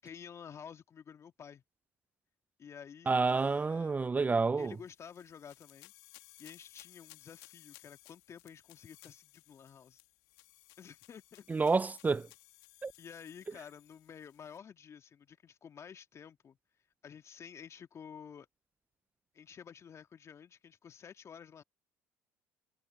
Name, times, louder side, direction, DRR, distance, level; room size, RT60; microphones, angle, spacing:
voice 1, 0.0-1.6 2.6-3.9 4.6-5.9 6.4-10.0 10.8-11.5 13.0-16.6 17.0-18.5 19.3-21.6, left 7 dB, 45° left, 2.2 m, -51 dB
voice 2, 3.1-4.7 11.5-12.3 12.8-12.9, right 4 dB, 25° right, 0.6 m, -29 dB
sound 1, 4.6-14.6, left 22 dB, 75° left, 2.3 m, -60 dB
hypercardioid pair, 65°, 7 cm